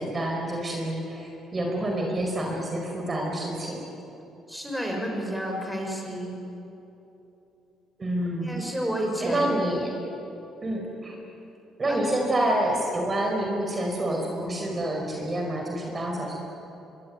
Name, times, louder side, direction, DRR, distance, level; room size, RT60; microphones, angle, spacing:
voice 1, 0.0-3.8 8.0-8.6 9.2-9.9 10.6-11.1 11.8-16.3, right 1 dB, 30° right, 1 dB, 4.8 m, -28 dB
voice 2, 4.5-6.3 8.4-9.5 11.9-12.2, equal, ahead, 1 dB, 6.2 m, -31 dB
24.0 x 23.0 x 9.6 m, 3.0 s
cardioid pair, 100°, 0 cm